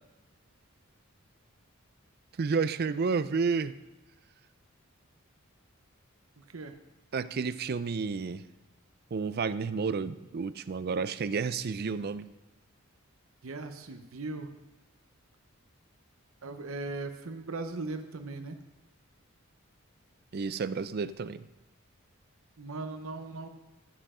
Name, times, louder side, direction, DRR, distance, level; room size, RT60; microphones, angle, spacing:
voice 1, 2.4-3.8 7.1-8.4 9.1-12.3 20.3-21.5, right 5 dB, 50° right, 14 dB, 0.4 m, -31 dB
voice 2, 6.4-6.7 13.4-14.5 16.4-18.6 22.6-23.5, right 3 dB, 75° right, 7 dB, 0.8 m, -38 dB
13.0 x 7.7 x 4.9 m, 1.1 s
head